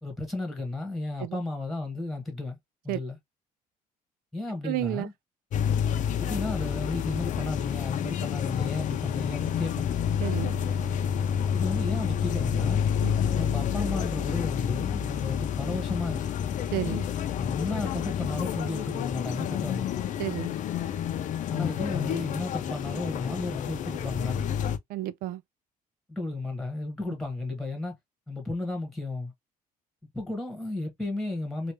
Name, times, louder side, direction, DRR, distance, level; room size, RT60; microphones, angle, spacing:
voice 1, 0.0-2.6 2.8-3.2 4.3-5.1 6.2-9.9 11.5-12.8 13.3-16.3 17.3-19.9 21.5-24.4 26.1-28.0 28.3-29.3 30.1-31.7, left 2 dB, ahead, 1.5 m, -33 dB
voice 2, 4.6-5.1 10.2-10.5 13.0-13.2 16.7-17.1 20.2-20.5 24.9-25.4, right 14 dB, 75° right, 0.4 m, -31 dB
sound 1, 5.5-24.8, left 9 dB, 55° left, 0.6 m, -29 dB
3.3 x 2.5 x 3.0 m
cardioid pair, 125°, 15 cm